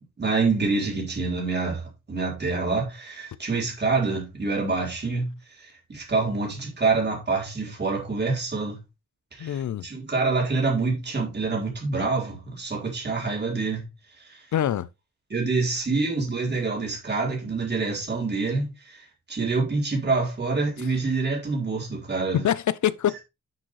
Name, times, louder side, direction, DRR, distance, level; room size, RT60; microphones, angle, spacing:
voice 1, 0.2-5.3 5.6-8.8 9.3-13.8 14.2-14.4 15.3-22.4, right 3 dB, 35° right, 4.2 m, -26 dB
voice 2, 9.4-9.9 14.5-14.9 22.3-23.2, left 10 dB, 75° left, 0.5 m, -24 dB
10.5 x 6.3 x 3.2 m
wide cardioid pair, 170°, 30 cm